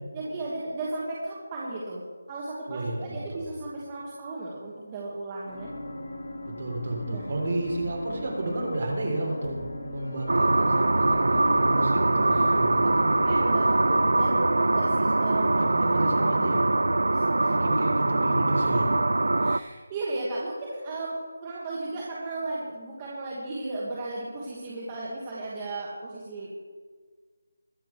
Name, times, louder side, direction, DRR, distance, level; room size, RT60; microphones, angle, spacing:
voice 1, 0.1-2.0 2.3-5.7 7.0-7.2 12.3-12.5 13.2-15.5 17.1-17.7 18.5-18.8 19.4-26.5, right 2 dB, 15° right, -5 dB, 1.4 m, -35 dB
voice 2, 2.7-3.4 6.6-13.1 15.5-16.6 17.5-18.9, right 1 dB, 35° right, -1 dB, 3.5 m, -31 dB
sound 1, 5.5-16.3, left 1 dB, 70° left, 4.4 m, -40 dB
sound 2, 7.7-8.8 9.4-10.5 11.1-12.2, left 1 dB, 25° left, 2.4 m, -47 dB
sound 3, 10.3-19.6, right 2 dB, 75° right, 0.4 m, -23 dB
22.0 x 8.5 x 4.5 m, 1.5 s
figure-of-eight pair, 180°, 0 cm